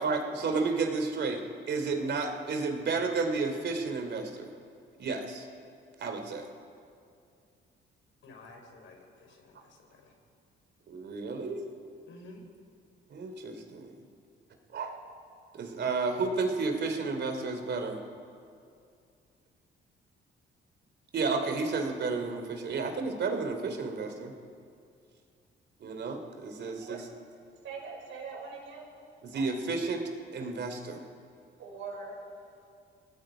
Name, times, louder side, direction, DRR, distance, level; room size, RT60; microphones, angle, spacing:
voice 1, 0.0-1.4 1.7-4.5 5.0-5.5 6.0-6.5 10.9-11.6 13.1-13.9 14.7-15.0 15.5-18.0 21.1-24.3 25.8-27.1 29.2-30.0 30.3-31.0, right 4 dB, 60° right, 5 dB, 3.1 m, -32 dB
voice 2, 8.2-10.1 12.1-12.4, left 2 dB, 75° left, 2 dB, 4.6 m, -52 dB
voice 3, 27.6-28.9 29.3-29.5 31.6-32.1, right 5 dB, 80° right, 0 dB, 5.5 m, -42 dB
28.0 x 19.0 x 5.1 m, 2.4 s
cardioid pair, 90°, 20 cm